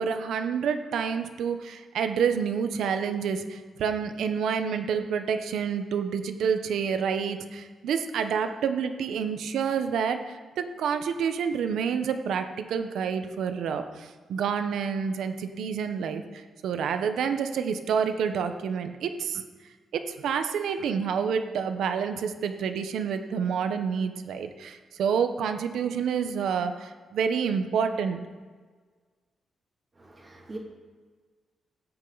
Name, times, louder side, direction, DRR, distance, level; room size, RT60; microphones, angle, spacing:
voice 1, 0.0-19.4 19.9-28.2, right 6 dB, 85° right, 8 dB, 0.9 m, -28 dB
voice 2, 30.0-30.6, right 2 dB, 25° right, -2 dB, 2.5 m, -42 dB
16.0 x 8.8 x 4.0 m, 1.5 s
cardioid pair, 125°, 0 cm